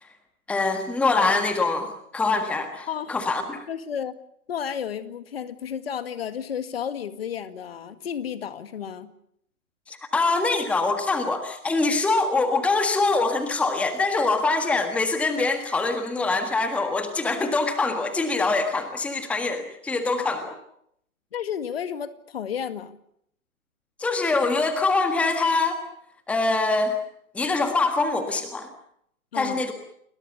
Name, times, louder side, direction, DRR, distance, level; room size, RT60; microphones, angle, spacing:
voice 1, 0.5-3.6 9.9-20.5 24.0-25.8 26.3-27.0 27.3-28.7 29.3-29.7, left 3 dB, 5° left, 7 dB, 1.6 m, -24 dB
voice 2, 3.7-4.1 4.5-9.1 21.3-23.0 29.3-29.6, left 8 dB, 45° left, 11 dB, 2.1 m, -32 dB
29.5 x 21.0 x 7.0 m, 0.71 s
figure-of-eight pair, 135°, 43 cm